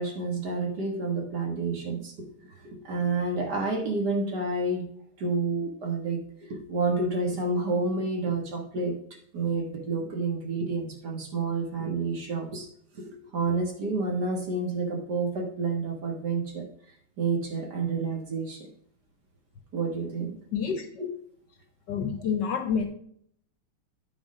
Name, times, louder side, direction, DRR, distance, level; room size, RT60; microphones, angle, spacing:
voice 1, 0.0-2.1 2.4-4.8 5.2-8.9 9.3-16.6 17.2-18.7 19.7-20.3 21.0-21.1, right 3 dB, 50° right, 2 dB, 2.0 m, -29 dB
voice 2, 20.5-20.8 21.9-22.9, left 6 dB, 60° left, 6 dB, 1.4 m, -28 dB
8.9 x 4.5 x 5.0 m, 0.64 s
omnidirectional pair, 2.4 m